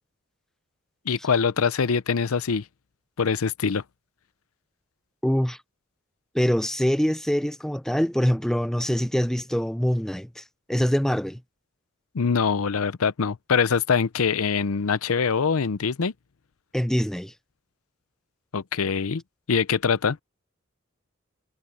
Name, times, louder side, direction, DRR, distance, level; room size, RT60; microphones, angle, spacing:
voice 1, 1.1-2.6 3.2-3.8 12.1-16.1 18.5-19.2 19.5-20.2, left 6 dB, 80° left, 0.6 m, -23 dB
voice 2, 5.2-5.6 6.3-10.4 10.7-11.4 16.7-17.3, equal, ahead, 0.4 m, -24 dB
head